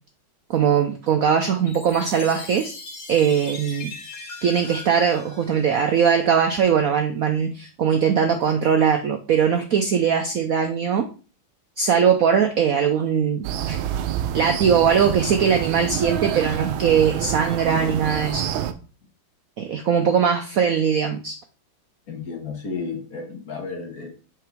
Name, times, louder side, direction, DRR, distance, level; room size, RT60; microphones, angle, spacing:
voice 1, 0.5-2.8 3.1-3.9 4.4-11.1 11.8-13.8 14.3-18.4 19.6-21.4, right 7 dB, 70° right, 6 dB, 0.8 m, -20 dB
Chime, 1.7-6.2, left 3 dB, 70° left, 2.0 m, -40 dB
sound 1, 13.4-18.7, right 10 dB, 90° right, 1.4 m, -27 dB
voice 2, 22.1-24.1, left 4 dB, 50° left, 3 dB, 1.6 m, -32 dB
7.5 x 4.9 x 3.5 m, 0.36 s
omnidirectional pair, 2.2 m